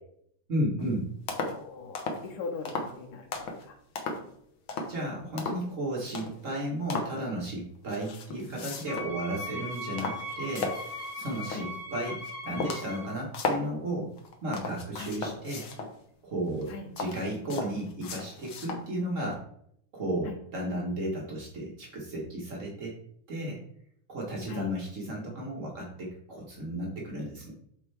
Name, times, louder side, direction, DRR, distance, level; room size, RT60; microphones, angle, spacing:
voice 1, 0.5-1.1 4.9-11.6 11.9-12.2 12.4-14.1 14.4-15.7 16.2-19.4 19.9-23.0 23.3-23.6 24.1-27.5, right 1 dB, 85° right, -3 dB, 0.6 m, -34 dB
sound 1, 0.8-0.9 1.3-1.6 1.9-2.3 2.6-2.9 3.3-3.6 4.0-4.3 4.7-5.0 5.4-5.7 6.1-6.4 6.9-7.2 7.9-9.2 9.5-11.7 12.2-12.3 12.6-13.7 14.2-16.0 16.5-18.9 19.3-19.4, left 3 dB, 90° left, 1.1 m, -36 dB
voice 2, 1.4-3.8 11.5-11.7 15.0-15.1 16.7-16.9 20.3-20.4 24.5-24.7, left 4 dB, 70° left, 3 dB, 2.2 m, -40 dB
Wind instrument woodwind instrument, 8.9-13.2, left 2 dB, 50° left, 1.3 m, -39 dB
12.0 x 4.4 x 3.5 m, 0.68 s
omnidirectional pair, 4.1 m